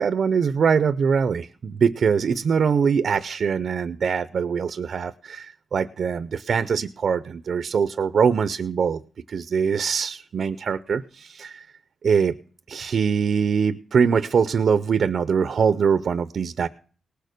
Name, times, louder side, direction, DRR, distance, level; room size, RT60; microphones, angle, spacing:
voice 1, 0.0-9.0 9.3-11.6 12.0-12.3 12.7-16.7, right 6 dB, 55° right, 13 dB, 0.6 m, -23 dB
18.5 x 6.6 x 6.6 m, 0.41 s
wide cardioid pair, 170°, 0 cm